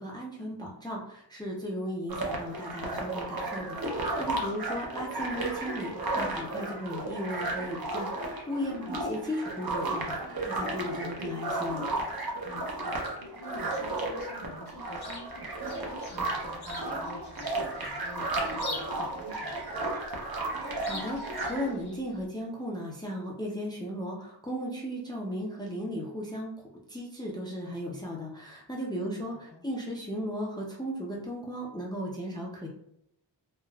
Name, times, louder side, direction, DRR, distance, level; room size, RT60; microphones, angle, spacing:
voice 1, 0.0-8.7 9.1-11.8 20.6-26.5 26.9-29.3 29.6-32.7, equal, 10° left, -2 dB, 0.5 m, -36 dB
sound 1, 2.1-21.7, right 2 dB, 50° right, 0.7 m, -34 dB
voice 2, 4.4-4.8 8.7-9.1 12.4-15.5 15.8-19.8 28.9-29.6, left 1 dB, 75° left, -2 dB, 0.9 m, -47 dB
Chirp tweet, 14.7-22.3, left 2 dB, 55° left, 0.7 m, -46 dB
3.2 x 2.3 x 2.3 m, 0.75 s
wide cardioid pair, 55°, 47 cm